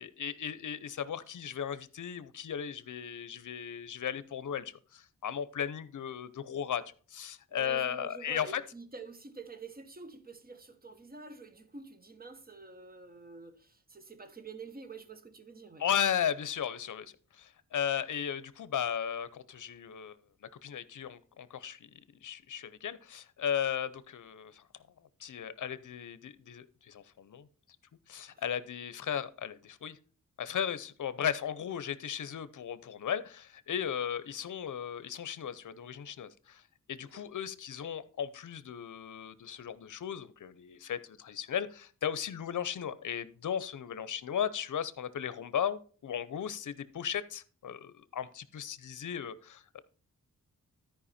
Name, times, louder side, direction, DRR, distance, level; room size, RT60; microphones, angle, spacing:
voice 1, 0.0-6.8 7.1-8.6 15.8-20.2 20.6-21.8 22.2-24.6 25.2-27.5 28.1-30.0 30.4-36.6 36.9-49.8, left 8 dB, 65° left, 0.8 m, -36 dB
voice 2, 7.5-15.8 28.3-28.4 37.0-37.2, right 4 dB, 25° right, 1.2 m, -48 dB
13.0 x 5.0 x 4.3 m
wide cardioid pair, 120°, 33 cm